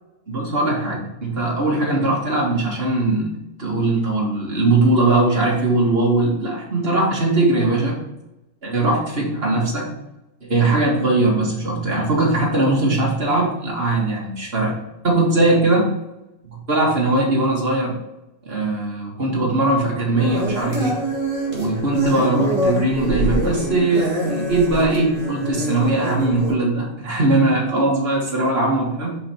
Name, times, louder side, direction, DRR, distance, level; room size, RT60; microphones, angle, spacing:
voice 1, 0.3-3.3 3.6-8.0 8.6-9.9 10.4-14.8 15.0-15.9 16.7-18.0 18.4-21.0 21.5-29.2, right 2 dB, 55° right, -3 dB, 2.2 m, -20 dB
sound 1, 20.2-26.5, right 1 dB, 25° right, 1.8 m, -25 dB
5.6 x 5.4 x 4.5 m, 0.93 s
omnidirectional pair, 1.3 m